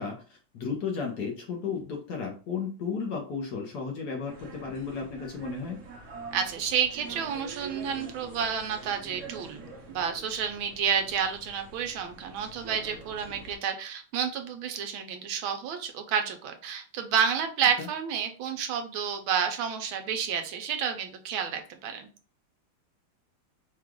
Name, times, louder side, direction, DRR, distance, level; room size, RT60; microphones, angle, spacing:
voice 1, 0.0-5.8 17.8-17.9, left 5 dB, 60° left, 0 dB, 1.3 m, -34 dB
sound 1, 4.3-13.6, right 2 dB, 50° right, 0.9 m, -46 dB
voice 2, 6.3-22.1, right 7 dB, 75° right, 6 dB, 1.5 m, -30 dB
4.7 x 2.4 x 3.6 m, 0.37 s
omnidirectional pair, 2.3 m